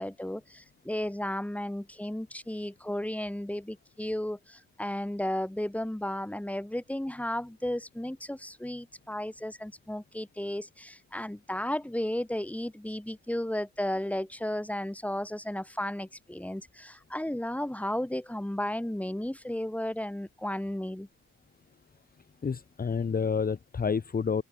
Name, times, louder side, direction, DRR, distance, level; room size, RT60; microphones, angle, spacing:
voice 1, 0.0-21.1, left 1 dB, 5° left, 4.1 m, -34 dB
voice 2, 22.4-24.4, left 6 dB, 30° left, 1.2 m, -29 dB
cardioid pair, 90°, 30 cm